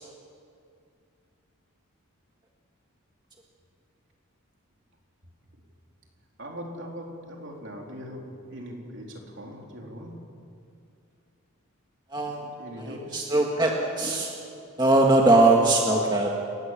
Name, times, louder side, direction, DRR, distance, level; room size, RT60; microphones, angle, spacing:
voice 1, 6.4-10.1 12.4-13.3, equal, 55° right, 0 dB, 4.0 m, -40 dB
voice 2, 12.1-12.4 13.1-14.3 14.8-16.3, right 2 dB, 20° right, 0 dB, 1.8 m, -20 dB
29.5 x 17.5 x 7.6 m, 2.5 s
head